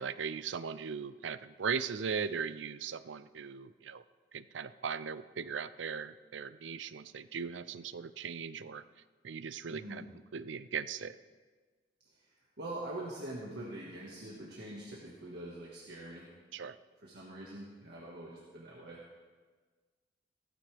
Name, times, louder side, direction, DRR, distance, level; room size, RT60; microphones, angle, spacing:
voice 1, 0.0-4.0 4.3-8.8 9.2-10.0 10.3-11.2 16.5-16.8, right 6 dB, 80° right, 14 dB, 0.5 m, -38 dB
voice 2, 9.7-10.1 12.1-12.3 12.6-16.3 17.0-19.0, right 1 dB, 65° right, -4 dB, 1.8 m, -44 dB
16.0 x 14.0 x 3.5 m, 1.4 s
head